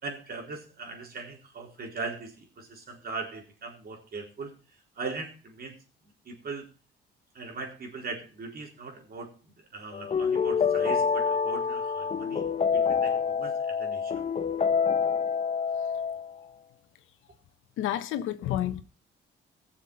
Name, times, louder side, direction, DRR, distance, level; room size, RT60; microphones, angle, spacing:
voice 1, 0.0-4.5 5.0-5.8 6.3-6.6 7.3-12.4 12.7-14.1, right 3 dB, 50° right, 4.2 m, -39 dB
sound 1, 9.9-16.4, left 6 dB, 35° left, 0.9 m, -27 dB
voice 2, 17.8-18.8, left 12 dB, 90° left, 1.2 m, -30 dB
16.5 x 7.0 x 5.6 m
cardioid pair, 90°, 20 cm